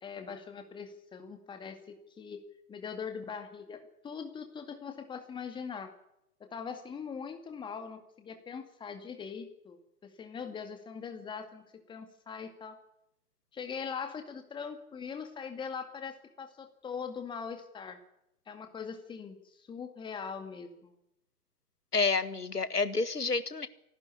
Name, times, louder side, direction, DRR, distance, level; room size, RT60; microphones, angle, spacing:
voice 1, 0.0-2.4 2.7-5.9 6.4-9.8 10.0-12.8 13.5-18.0 18.5-20.9, left 6 dB, 10° left, 7 dB, 2.2 m, -41 dB
voice 2, 21.9-23.7, left 4 dB, 80° left, 15 dB, 1.8 m, -29 dB
27.5 x 12.5 x 9.9 m, 0.82 s
figure-of-eight pair, 120°, 46 cm